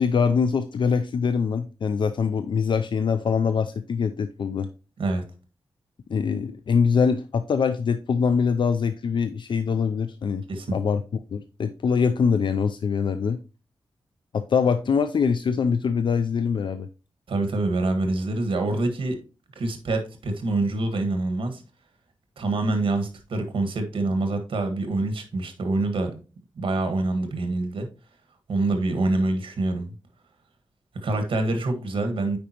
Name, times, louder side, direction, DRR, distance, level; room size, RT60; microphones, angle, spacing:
voice 1, 0.0-4.7 6.1-10.4 10.7-11.0 11.3-13.4 14.3-16.9, left 6 dB, 65° left, 10 dB, 0.4 m, -23 dB
voice 2, 17.3-19.2 19.5-21.6 22.4-26.2 26.6-27.9 28.5-29.9 31.0-32.4, right 2 dB, 80° right, 6 dB, 1.5 m, -26 dB
8.6 x 5.0 x 2.9 m, 0.32 s
wide cardioid pair, 110°, 9 cm